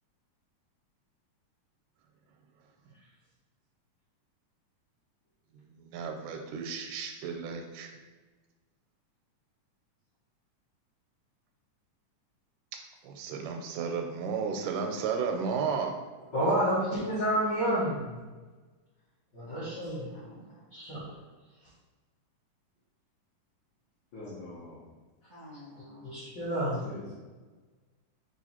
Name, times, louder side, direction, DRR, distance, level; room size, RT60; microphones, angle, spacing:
voice 1, 5.7-7.9 13.0-15.9, right 6 dB, 85° right, 4 dB, 2.1 m, -33 dB
voice 2, 16.3-18.2 19.3-20.3 20.7-21.1 26.0-26.8, right 1 dB, 55° left, -9 dB, 1.2 m, -29 dB
voice 3, 17.6-18.1 19.4-20.6 25.3-26.2, left 1 dB, 50° right, -10 dB, 0.5 m, -49 dB
voice 4, 24.1-24.8 26.8-27.1, left 2 dB, 80° left, -8 dB, 1.1 m, -43 dB
4.8 x 2.5 x 4.2 m, 1.3 s
omnidirectional pair, 3.5 m